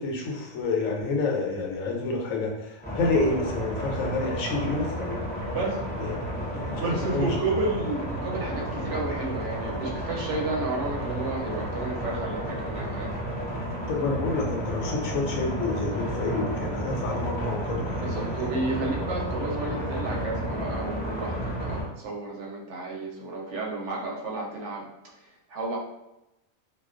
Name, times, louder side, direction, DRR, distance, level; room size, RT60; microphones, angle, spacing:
voice 1, 0.0-5.2 6.0-6.1 6.8-7.4 13.9-18.3, left 3 dB, 85° left, 0 dB, 1.0 m, -28 dB
sound 1, 2.8-21.8, equal, 15° left, 0.3 m, -32 dB
voice 2, 5.5-5.9 6.8-13.1 17.9-24.9 25.5-25.8, right 3 dB, 70° right, -2 dB, 0.8 m, -31 dB
2.3 x 2.2 x 2.4 m, 0.92 s
omnidirectional pair, 1.4 m